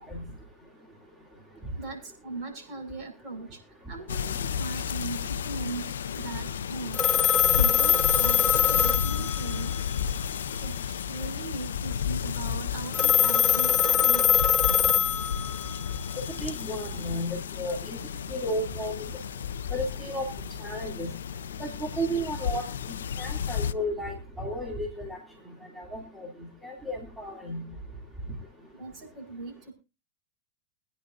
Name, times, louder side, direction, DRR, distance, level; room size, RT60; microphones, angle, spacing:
voice 1, 1.7-3.6 3.9-7.2 7.4-9.9 10.6-14.3 28.8-29.7, right 3 dB, 45° right, 3 dB, 6.2 m, -39 dB
sound 1, 4.1-23.7, left 8 dB, 80° left, 0.6 m, -33 dB
Telephone, 6.9-9.8 12.9-15.8, left 9 dB, 20° left, 1.2 m, -23 dB
voice 2, 16.4-18.0 18.3-19.1 19.7-20.3 20.6-21.1 21.6-22.7 23.2-25.2 25.8-26.3 26.6-27.6, equal, 10° right, 0 dB, 2.8 m, -33 dB
22.5 x 9.9 x 2.7 m, 0.29 s
hypercardioid pair, 105°, 0 cm